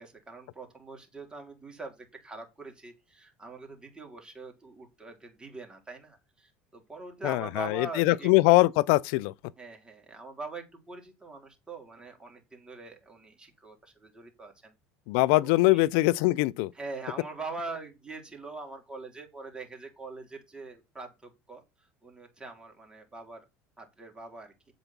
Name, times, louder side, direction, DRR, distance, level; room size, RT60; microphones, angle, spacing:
voice 1, 0.0-8.3 9.6-14.7 15.4-15.8 16.7-21.6 22.0-23.5 23.8-24.5, right 3 dB, 15° right, 3.6 m, -43 dB
voice 2, 7.2-9.3 15.1-16.7, left 20 dB, 75° left, 0.4 m, -22 dB
7.9 x 5.3 x 5.9 m
supercardioid pair, 95°, 7 cm